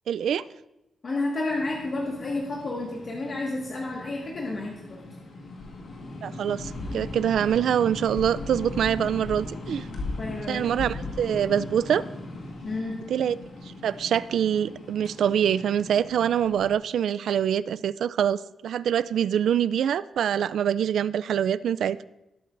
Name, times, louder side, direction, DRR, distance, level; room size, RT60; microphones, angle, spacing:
voice 1, 0.1-0.4 6.2-9.9 10.5-12.0 13.1-13.4 13.8-22.0, right 9 dB, 85° right, 17 dB, 0.3 m, -25 dB
voice 2, 1.0-5.0 10.2-11.1 12.6-13.0, left 2 dB, 40° left, -3 dB, 1.6 m, -31 dB
sound 1, 1.5-16.7, left 2 dB, 65° left, 1.8 m, -38 dB
18.0 x 8.5 x 2.6 m, 0.92 s
wide cardioid pair, 155°, 0 cm